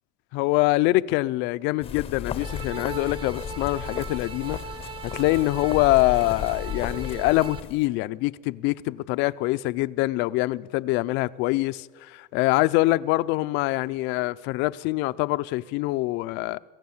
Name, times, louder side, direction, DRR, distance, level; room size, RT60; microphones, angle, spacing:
voice 1, 0.3-4.6 5.1-16.6, left 19 dB, 60° left, 0.6 m, -24 dB
sound 1, 1.8-7.9, left 9 dB, 30° left, 0.8 m, -35 dB
sound 2, 2.3-7.6, right 5 dB, 25° right, 1.0 m, -39 dB
26.5 x 15.0 x 7.2 m
cardioid pair, 145°, 20 cm